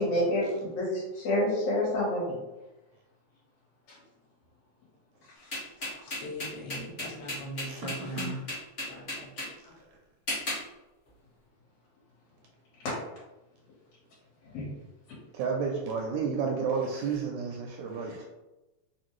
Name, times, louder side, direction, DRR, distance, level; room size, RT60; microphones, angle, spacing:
voice 1, 0.0-2.4 5.2-6.3 6.7-7.2 9.6-9.7 14.5-14.6, left 1 dB, 70° left, -6 dB, 2.4 m, -30 dB
sound 1, 5.5-9.5 10.3-10.6, left 1 dB, 45° left, 0.8 m, -34 dB
voice 2, 6.1-8.4 8.8-9.5, equal, 85° left, -2 dB, 2.1 m, -40 dB
voice 3, 7.6-8.4 15.3-18.2, right 5 dB, 80° right, 0 dB, 1.7 m, -32 dB
5.1 x 2.3 x 3.1 m, 1.0 s
omnidirectional pair, 3.4 m